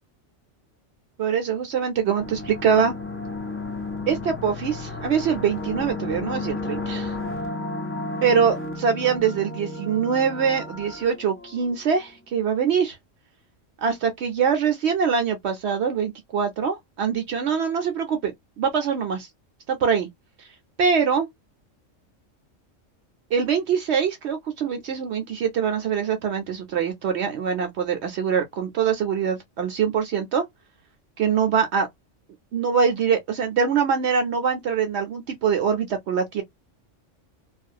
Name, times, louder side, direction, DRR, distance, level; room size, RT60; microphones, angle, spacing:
voice 1, 1.2-2.9 4.1-7.1 8.2-13.0 13.8-18.3 18.6-19.3 19.7-20.1 20.8-21.3 23.3-30.4 31.2-31.9 32.5-36.4, right 6 dB, 65° right, 0.8 m, -23 dB
sound 1, 2.2-11.9, left 2 dB, 20° left, 0.3 m, -33 dB
2.3 x 2.3 x 2.6 m
omnidirectional pair, 1.3 m